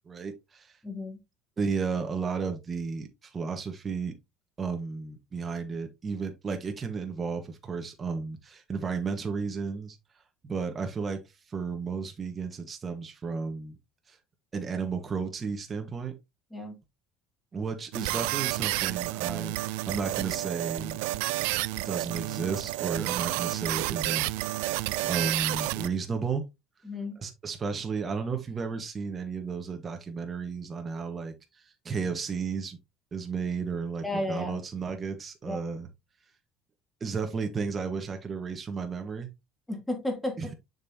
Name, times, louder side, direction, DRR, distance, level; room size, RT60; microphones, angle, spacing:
voice 1, 0.1-0.8 1.6-4.1 4.6-10.0 10.4-11.2 11.5-13.8 14.1-14.2 14.5-16.1 17.5-21.0 21.8-24.3 25.0-26.4 27.2-32.8 33.1-35.9 37.0-39.3 40.4-40.5, right 5 dB, 25° right, 1.3 m, -33 dB
voice 2, 0.8-1.2 16.5-16.8 26.8-27.2 34.0-34.6 35.5-35.6 39.7-40.5, left 1 dB, 5° left, 2.6 m, -33 dB
sound 1, 17.9-25.9, right 20 dB, 85° right, 0.3 m, -30 dB
6.8 x 5.4 x 2.8 m
cardioid pair, 125°, 0 cm